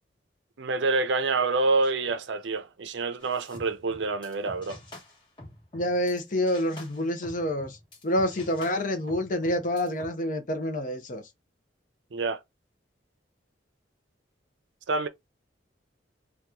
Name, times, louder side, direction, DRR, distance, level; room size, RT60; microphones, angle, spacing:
voice 1, 0.6-4.8 12.1-12.4 14.9-15.1, right 3 dB, 70° right, 0.5 m, -27 dB
sound 1, 3.2-6.2 6.5-10.1, left 1 dB, 25° left, 1.2 m, -47 dB
voice 2, 5.7-7.8 8.0-11.2, left 1 dB, 45° left, 0.7 m, -27 dB
2.9 x 2.3 x 3.6 m
head